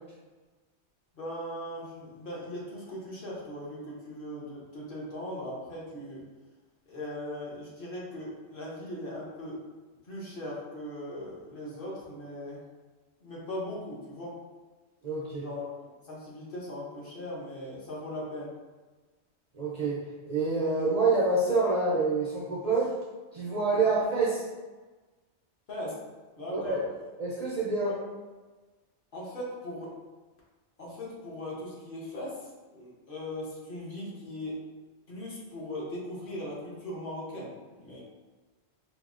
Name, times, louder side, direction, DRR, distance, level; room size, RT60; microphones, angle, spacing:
voice 1, 1.1-6.2 6.9-9.6 10.1-12.6 13.2-14.4 15.4-18.5 23.8-23.9 25.7-26.0 26.4-26.8 27.8-28.0 29.1-29.8 30.8-34.5 35.1-37.5 37.8-38.0, left 1 dB, 55° left, -6 dB, 1.0 m, -39 dB
voice 2, 15.0-15.5 19.6-20.0 20.3-22.9 23.3-24.4 26.5-26.9 27.2-28.0, right 3 dB, 55° right, -5 dB, 0.4 m, -27 dB
4.3 x 2.0 x 2.4 m, 1.3 s
omnidirectional pair, 1.2 m